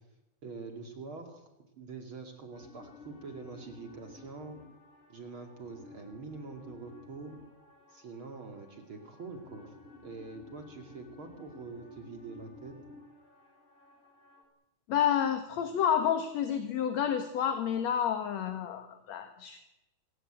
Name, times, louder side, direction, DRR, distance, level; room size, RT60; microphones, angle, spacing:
voice 1, 0.4-1.5 1.8-4.6 5.1-7.4 7.9-9.7 10.0-12.7, right 4 dB, 45° right, 4 dB, 3.1 m, -45 dB
sound 1, 2.5-14.4, left 3 dB, 85° left, 6.1 m, -54 dB
voice 2, 14.9-19.6, left 9 dB, 65° left, 7 dB, 2.6 m, -29 dB
26.5 x 15.5 x 9.0 m, 0.93 s
omnidirectional pair, 3.4 m